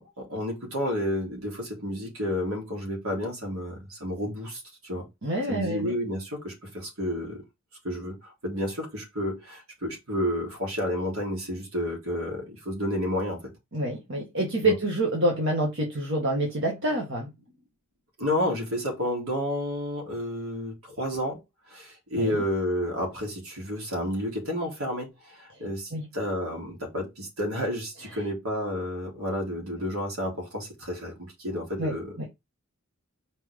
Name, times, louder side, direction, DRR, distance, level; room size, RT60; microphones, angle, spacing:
voice 1, 0.0-5.1 5.5-7.4 7.8-13.5 14.6-14.7 18.2-21.4 21.7-32.2, left 1 dB, 75° right, 3.6 m, -31 dB
voice 2, 5.2-5.9 13.7-17.3 22.2-22.4 25.9-26.1 31.8-32.3, right 1 dB, 55° right, 1.7 m, -27 dB
6.1 x 4.6 x 3.5 m
head